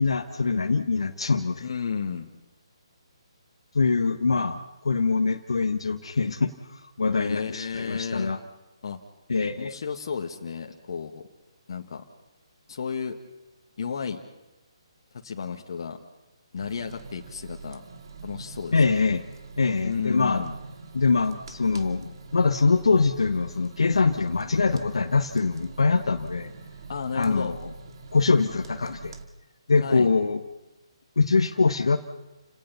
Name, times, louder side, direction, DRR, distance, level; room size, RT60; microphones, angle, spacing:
voice 1, 0.0-1.6 3.7-8.4 9.3-9.7 18.7-19.2 19.6-20.4 20.9-26.5 27.1-27.7 28.1-29.1 29.7-30.4 31.2-32.0, left 4 dB, 70° left, 6 dB, 1.4 m, -23 dB
voice 2, 1.6-2.3 4.3-4.4 7.2-8.3 8.8-9.0 9.6-11.3 11.7-12.0 12.7-13.2 13.8-14.2 15.2-16.0 16.5-17.8 18.2-18.7 19.8-20.6 26.9-27.6 29.8-30.1, left 6 dB, 55° left, 3 dB, 1.8 m, -32 dB
sound 1, 16.6-29.2, right 4 dB, 55° right, 2.3 m, -44 dB
30.0 x 18.0 x 5.7 m, 1.1 s
figure-of-eight pair, 140°, 3 cm